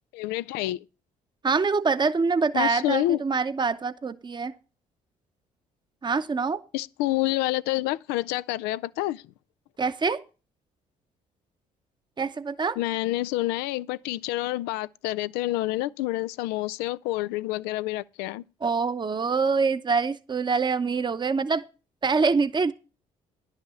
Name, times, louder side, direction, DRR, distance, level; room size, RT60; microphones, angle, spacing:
voice 1, 0.1-0.8 2.5-3.2 6.7-9.2 12.8-18.4, left 16 dB, 80° left, 0.4 m, -28 dB
voice 2, 1.4-4.5 6.0-6.6 9.8-10.2 12.2-12.8 18.6-21.6 22.0-22.7, right 4 dB, 25° right, 0.8 m, -25 dB
10.5 x 5.6 x 7.1 m
hypercardioid pair, 55°, 16 cm